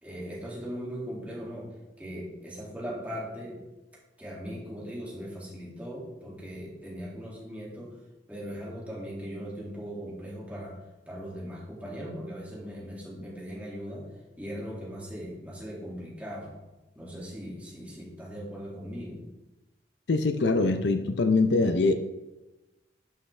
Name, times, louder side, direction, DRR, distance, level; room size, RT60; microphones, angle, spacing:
voice 1, 0.0-1.7 2.0-3.6 4.2-8.0 8.3-10.8 11.1-14.1 14.4-16.5 17.0-19.2, equal, 10° right, -5 dB, 2.1 m, -39 dB
voice 2, 20.1-21.9, left 3 dB, 65° left, 8 dB, 0.5 m, -23 dB
11.5 x 5.7 x 3.3 m, 1.1 s
head